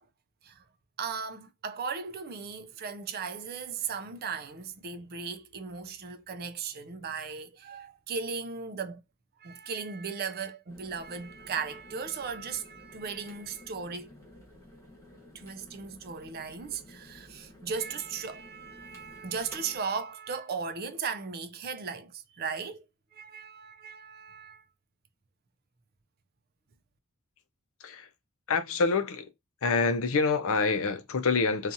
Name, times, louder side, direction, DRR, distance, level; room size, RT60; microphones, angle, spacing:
voice 1, 1.0-9.0 9.4-14.1 15.3-24.6, right 5 dB, 45° right, 0.4 m, -37 dB
sound 1, 10.7-19.8, left 1 dB, 15° left, 1.1 m, -53 dB
voice 2, 28.5-29.3 29.6-31.7, left 4 dB, 65° left, 0.6 m, -26 dB
2.7 x 2.4 x 2.6 m
head